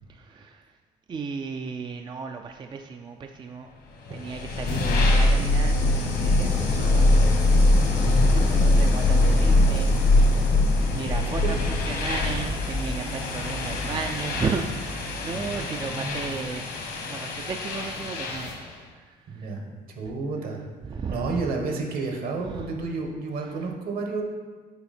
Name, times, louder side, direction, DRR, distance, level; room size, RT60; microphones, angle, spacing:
voice 1, 0.1-0.7 1.1-3.7 4.1-7.1 8.3-10.6 10.9-18.5 18.9-19.6 20.8-21.5 22.5-22.7, right 5 dB, 25° right, 4 dB, 0.4 m, -35 dB
sound 1, 4.1-18.7, left 2 dB, 75° left, 1.3 m, -22 dB
voice 2, 15.3-16.5 19.3-20.6 21.1-24.2, right 3 dB, 60° right, 2 dB, 1.4 m, -32 dB
6.9 x 4.8 x 4.3 m, 1.4 s
cardioid pair, 110°, 17 cm